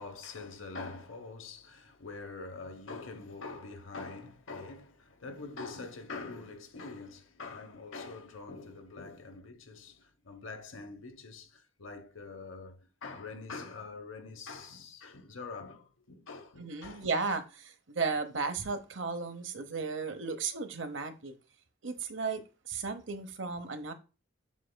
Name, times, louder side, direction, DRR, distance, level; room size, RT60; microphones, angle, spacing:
voice 1, 0.0-17.1, left 3 dB, 85° left, 1.0 m, -44 dB
voice 2, 16.6-21.3 21.8-23.9, right 4 dB, 70° right, 0.9 m, -35 dB
7.3 x 6.1 x 2.2 m
head